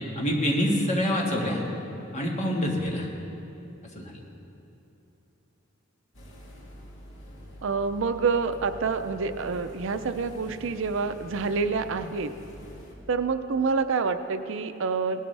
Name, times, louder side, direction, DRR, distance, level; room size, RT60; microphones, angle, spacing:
voice 1, 0.2-1.6 2.1-3.1 4.0-4.2, equal, 35° left, -1 dB, 1.7 m, -26 dB
sound 1, 6.1-13.0, left 1 dB, 65° left, 2.2 m, -46 dB
voice 2, 7.6-12.3 13.1-15.2, right 4 dB, 65° right, 10 dB, 0.5 m, -27 dB
18.0 x 12.0 x 3.3 m, 2.9 s
head